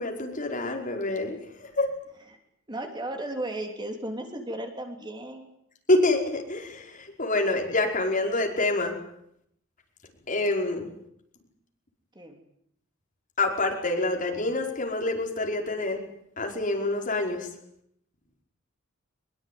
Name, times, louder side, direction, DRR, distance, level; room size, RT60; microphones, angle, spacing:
voice 1, 0.0-1.9 5.9-8.9 10.3-10.9 13.4-16.0 16.4-17.5, left 2 dB, 40° left, 1 dB, 5.1 m, -27 dB
voice 2, 2.7-5.5 12.1-12.4, right 1 dB, 20° right, 4 dB, 3.3 m, -35 dB
23.0 x 22.5 x 9.4 m, 0.74 s
head